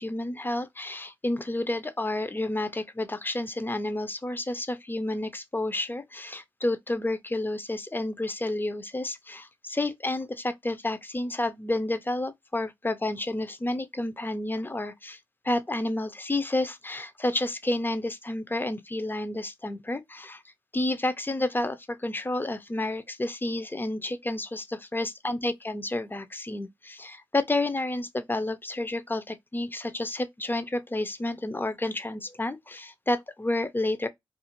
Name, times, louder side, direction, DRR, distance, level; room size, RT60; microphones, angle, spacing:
voice 1, 0.0-15.2 15.4-20.4 20.7-34.1, left 2 dB, 20° left, 0.5 m, -30 dB
2.4 x 2.4 x 2.9 m
cardioid pair, 45°, 10 cm